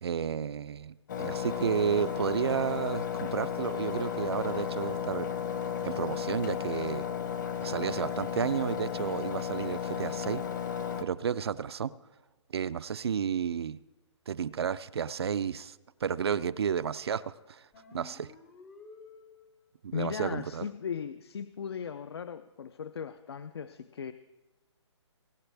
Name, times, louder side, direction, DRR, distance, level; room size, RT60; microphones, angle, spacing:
voice 1, 0.0-5.3 5.8-7.0 7.6-10.4 11.0-11.9 12.5-13.8 14.3-15.8 16.0-17.6 17.9-18.3 19.8-20.7, right 7 dB, 60° right, 15 dB, 0.5 m, -32 dB
Engine, 1.1-11.0, left 8 dB, 40° left, 1.0 m, -34 dB
sound 1, 17.7-19.7, left 3 dB, 10° left, 0.5 m, -52 dB
voice 2, 19.9-24.1, left 7 dB, 55° left, 12 dB, 0.5 m, -37 dB
21.0 x 10.5 x 3.4 m, 1.1 s
hypercardioid pair, 170°, 15 cm